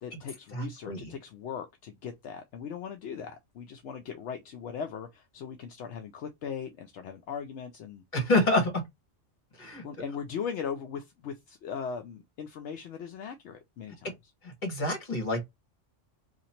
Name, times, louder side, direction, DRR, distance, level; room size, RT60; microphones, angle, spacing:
voice 1, 0.0-8.0 9.8-14.1, left 7 dB, 70° left, 0.8 m, -39 dB
voice 2, 0.5-1.1 8.1-8.8 9.6-9.8 14.4-15.4, left 2 dB, 40° left, 1.5 m, -27 dB
2.9 x 2.5 x 4.1 m
omnidirectional pair, 1.3 m